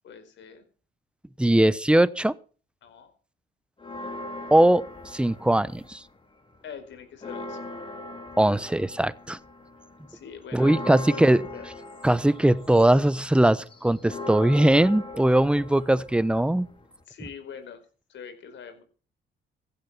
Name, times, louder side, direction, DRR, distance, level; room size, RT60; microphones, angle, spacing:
voice 1, 0.0-0.6 2.8-3.1 6.6-7.6 10.0-11.7 17.1-17.8 18.1-18.8, left 6 dB, 70° left, 4.9 m, -43 dB
voice 2, 1.4-2.3 4.5-4.8 5.1-6.0 8.4-9.4 10.5-11.4 12.0-16.7, right 1 dB, 5° right, 0.9 m, -20 dB
sound 1, 3.8-6.2 6.5-17.0, left 1 dB, 25° left, 3.2 m, -40 dB
15.5 x 11.5 x 5.8 m
cardioid pair, 90°, 20 cm